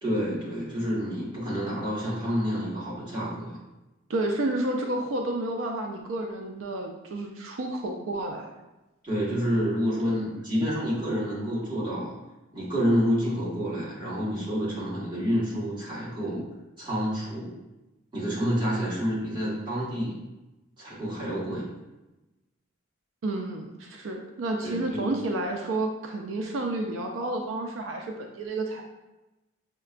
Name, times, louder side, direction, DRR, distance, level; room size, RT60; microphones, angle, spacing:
voice 1, 0.0-3.6 9.0-12.1 12.5-16.4 16.8-17.5 18.1-20.2 20.8-21.7 24.6-25.0, equal, 25° right, -8 dB, 1.4 m, -28 dB
voice 2, 4.1-8.5 10.0-10.3 23.2-28.8, right 2 dB, 85° right, 2 dB, 0.4 m, -30 dB
6.5 x 2.2 x 2.4 m, 1.0 s
head